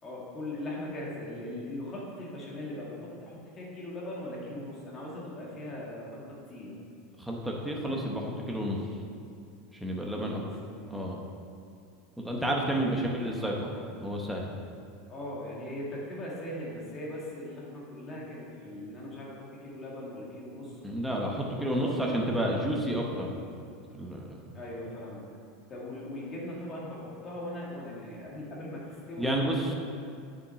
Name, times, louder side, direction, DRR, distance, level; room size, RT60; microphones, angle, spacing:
voice 1, 0.0-6.2 6.5-6.8 10.2-11.1 12.7-13.1 15.1-20.7 21.4-22.7 24.5-25.3 25.7-29.7, left 1 dB, 15° left, -5 dB, 1.9 m, -40 dB
voice 2, 7.2-8.8 9.7-10.4 10.9-11.2 12.2-14.5 20.8-23.3 23.9-24.4 29.2-29.7, right 1 dB, ahead, -2 dB, 0.9 m, -30 dB
7.4 x 7.2 x 5.7 m, 2.4 s
supercardioid pair, 180°, 0 cm